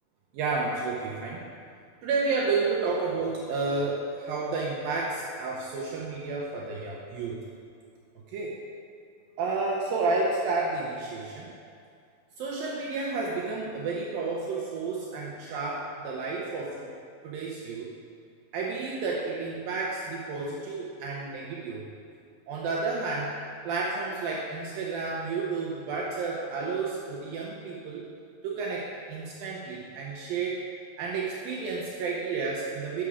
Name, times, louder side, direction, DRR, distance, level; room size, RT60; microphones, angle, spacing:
voice 1, 0.3-1.4 2.0-7.4 8.3-8.5 9.4-11.5 12.4-16.8 17.2-17.9 18.5-21.8 22.5-23.4 23.7-28.0 28.4-30.6 31.0-33.0, right 3 dB, 80° right, -3 dB, 2.1 m, -31 dB
9.2 x 7.3 x 4.9 m, 2.3 s
omnidirectional pair, 5.0 m